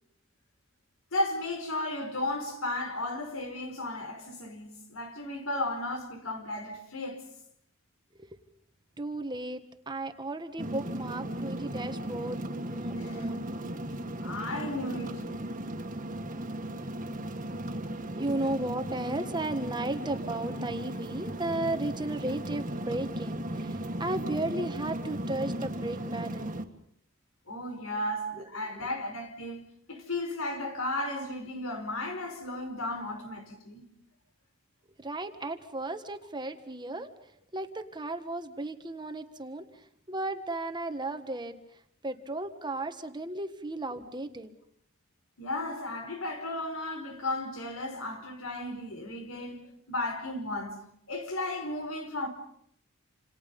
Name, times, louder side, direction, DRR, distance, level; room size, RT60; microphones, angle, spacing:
voice 1, 1.1-7.2 13.0-13.3 14.2-15.3 27.5-33.8 45.4-50.8 51.1-52.3, left 1 dB, 80° left, 4.9 m, -34 dB
voice 2, 9.0-9.6 9.9-13.4 18.1-26.5 35.0-37.1 37.5-39.6 40.1-41.5 42.0-44.5, right 2 dB, 20° right, 1.6 m, -34 dB
sound 1, 10.6-26.6, right 1 dB, 40° right, 2.0 m, -36 dB
28.0 x 28.0 x 5.5 m
head